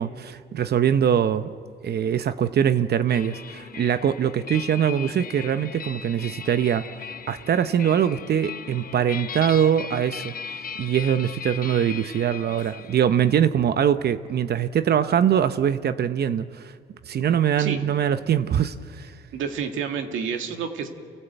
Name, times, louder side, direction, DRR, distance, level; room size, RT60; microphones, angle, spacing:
voice 1, 0.0-1.5 1.8-6.9 7.3-10.3 10.8-16.7 17.1-19.1, right 9 dB, 55° right, 11 dB, 0.7 m, -22 dB
sound 1, 3.1-13.4, left 7 dB, 45° left, 0.9 m, -38 dB
voice 2, 19.3-20.9, right 7 dB, 80° right, 4 dB, 2.0 m, -29 dB
29.0 x 16.0 x 8.1 m, 2.2 s
cardioid pair, 90°, 20 cm